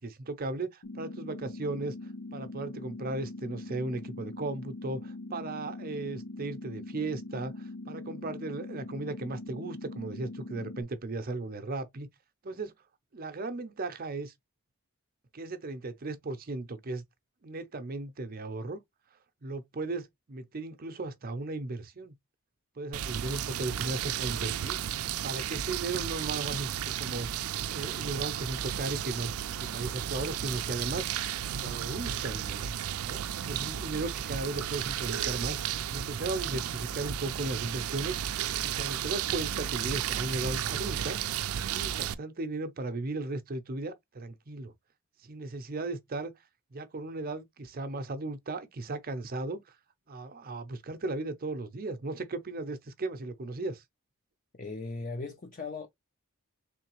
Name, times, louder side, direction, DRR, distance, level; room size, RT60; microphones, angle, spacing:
voice 1, 0.0-12.1 12.4-12.7 13.1-14.3 15.3-17.0 17.4-18.8 19.4-22.2 22.8-24.8 25.2-26.7 27.0-27.3 27.7-29.3 29.6-31.2 31.6-32.7 33.0-35.6 35.9-41.2 41.7-44.7 45.2-46.3 46.7-49.8 50.1-53.8, right 2 dB, 45° right, 0.6 m, -36 dB
sound 1, 0.8-10.8, left 2 dB, 80° left, 0.6 m, -42 dB
sound 2, 22.9-42.1, right 10 dB, 85° right, 0.4 m, -33 dB
voice 2, 54.6-55.9, left 3 dB, 35° left, 0.5 m, -38 dB
3.8 x 3.3 x 3.0 m
head